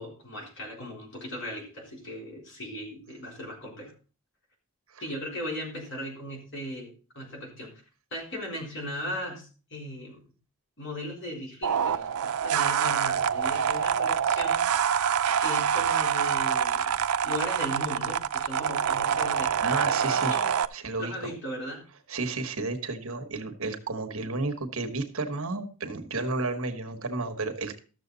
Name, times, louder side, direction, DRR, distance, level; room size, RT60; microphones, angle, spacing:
voice 1, 0.0-3.9 5.0-7.7 8.1-10.2 10.8-14.6 15.4-19.6 19.9-20.5 21.0-21.8, equal, 55° left, -1 dB, 4.0 m, -38 dB
sound 1, 11.6-20.7, right 8 dB, 80° right, 0.5 m, -26 dB
voice 2, 19.6-20.3 20.7-21.3 22.1-27.8, right 3 dB, 65° right, 6 dB, 1.4 m, -32 dB
13.5 x 6.9 x 4.0 m, 0.36 s
head